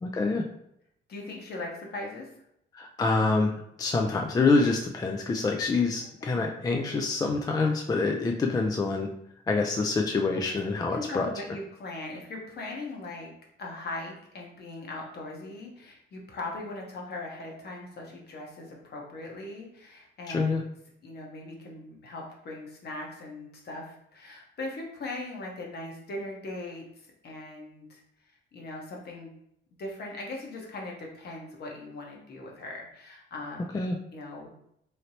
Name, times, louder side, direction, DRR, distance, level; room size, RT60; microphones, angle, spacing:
voice 1, 0.0-0.4 2.7-9.1 9.4-11.3 20.3-20.6 33.7-34.0, left 3 dB, 20° left, 2 dB, 0.3 m, -26 dB
voice 2, 1.1-2.3 6.2-6.4 10.9-13.3 13.6-20.5 21.0-29.3 29.8-33.7 34.1-34.5, left 2 dB, 55° left, -1 dB, 1.0 m, -39 dB
3.2 x 2.7 x 2.7 m, 0.74 s
cardioid pair, 90°, 20 cm